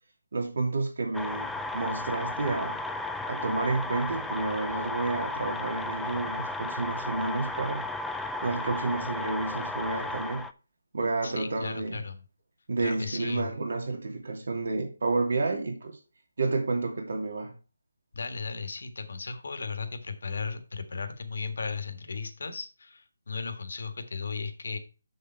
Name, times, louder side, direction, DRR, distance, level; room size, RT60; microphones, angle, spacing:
voice 1, 0.3-2.8 3.3-7.8 8.4-10.5 10.9-12.0 12.7-16.0 16.4-17.5, right 3 dB, 65° right, 2.6 m, -30 dB
sound 1, 1.1-10.5, left 2 dB, 5° left, 0.3 m, -34 dB
voice 2, 11.2-12.2 12.8-13.5 18.1-24.8, left 4 dB, 65° left, 1.6 m, -36 dB
6.7 x 6.6 x 4.5 m
hypercardioid pair, 165°, 0 cm